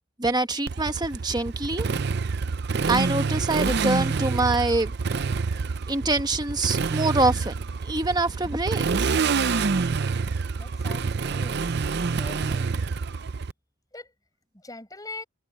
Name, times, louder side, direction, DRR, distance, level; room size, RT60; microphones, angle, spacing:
voice 1, 0.2-1.9 2.9-4.9 5.9-9.2, right 2 dB, 20° right, 1.3 m, -25 dB
Motorcycle, 0.7-13.5, right 4 dB, 50° right, 0.5 m, -27 dB
voice 2, 10.6-11.6 12.2-12.9 13.9-14.1 14.5-15.2, left 2 dB, 15° left, 6.4 m, -41 dB
head